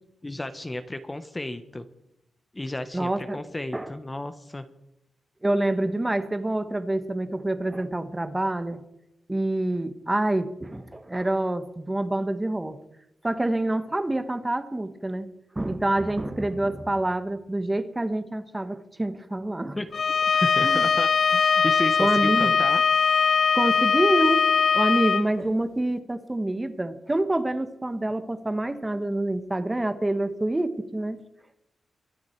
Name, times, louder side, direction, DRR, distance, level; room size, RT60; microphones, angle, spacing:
voice 1, 0.2-1.9 2.5-4.7 19.8-19.9 20.3-22.8, left 1 dB, 20° left, 10 dB, 0.9 m, -33 dB
voice 2, 2.9-3.4 3.7-3.9 5.4-8.8 9.3-12.8 13.2-15.3 15.5-19.8 20.6-20.8 22.0-22.6 23.5-31.2, right 1 dB, 15° right, 10 dB, 1.2 m, -27 dB
Bowed string instrument, 19.9-25.2, left 6 dB, 50° left, 0.5 m, -21 dB
23.5 x 9.5 x 4.5 m, 0.85 s
cardioid pair, 90°, 0 cm